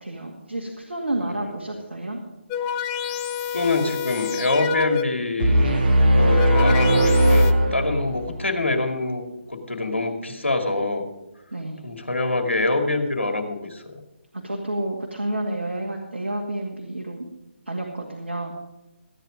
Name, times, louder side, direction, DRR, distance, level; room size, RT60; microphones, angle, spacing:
voice 1, 0.0-2.2 11.5-11.9 14.3-17.3 17.7-18.5, right 1 dB, 70° right, 0 dB, 2.2 m, -30 dB
sound 1, 2.5-5.3 6.1-7.5, left 8 dB, 15° left, 0.5 m, -28 dB
voice 2, 3.5-5.8 6.1-11.1 11.8-14.0, left 2 dB, 80° left, 4 dB, 2.4 m, -25 dB
sound 2, 5.4-8.4, right 1 dB, 50° right, 2.4 m, -18 dB
15.0 x 9.2 x 5.2 m, 0.99 s
figure-of-eight pair, 145°, 6 cm